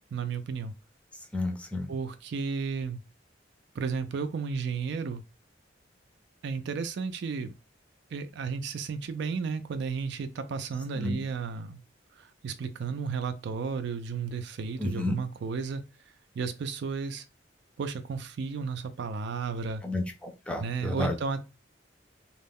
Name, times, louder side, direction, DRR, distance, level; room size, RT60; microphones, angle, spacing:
voice 1, 0.1-0.7 1.9-3.0 3.8-5.2 6.4-7.5 8.1-11.8 12.2-15.8 16.4-17.2 17.8-19.8 20.6-21.5, right 5 dB, 65° right, 0.3 m, -33 dB
voice 2, 1.3-1.9 11.0-11.2 14.8-15.1 19.8-21.2, left 2 dB, 5° left, 0.4 m, -31 dB
2.3 x 2.0 x 3.4 m
head